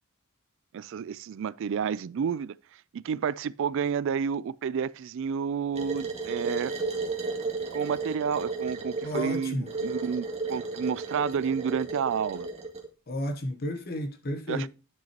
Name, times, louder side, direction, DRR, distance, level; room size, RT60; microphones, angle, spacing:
voice 1, 0.7-2.6 2.9-6.7 7.7-12.5 14.5-14.7, right 7 dB, 60° right, 0.3 m, -30 dB
sound 1, 5.7-12.9, right 3 dB, 30° right, 1.9 m, -33 dB
voice 2, 9.0-9.7 13.1-14.7, left 1 dB, 45° left, 0.9 m, -32 dB
10.5 x 5.9 x 2.9 m
head